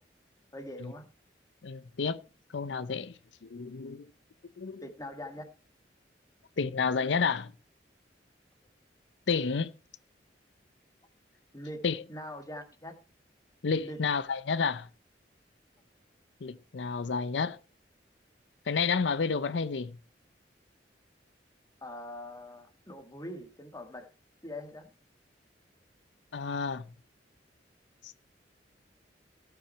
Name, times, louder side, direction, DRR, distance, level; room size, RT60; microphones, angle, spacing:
voice 1, 0.5-1.0 4.8-5.4 11.5-11.8 12.1-12.9 13.8-14.0 21.8-24.1 24.4-24.9, left 1 dB, 20° left, 1.8 m, -42 dB
voice 2, 1.6-2.2 2.5-3.1 3.4-4.1 4.6-4.8 6.6-7.5 9.3-9.7 11.8-12.0 13.6-14.9 16.4-17.6 18.7-20.0 26.3-26.8 28.0-28.1, left 5 dB, 90° left, 0.6 m, -30 dB
18.0 x 5.9 x 4.5 m
head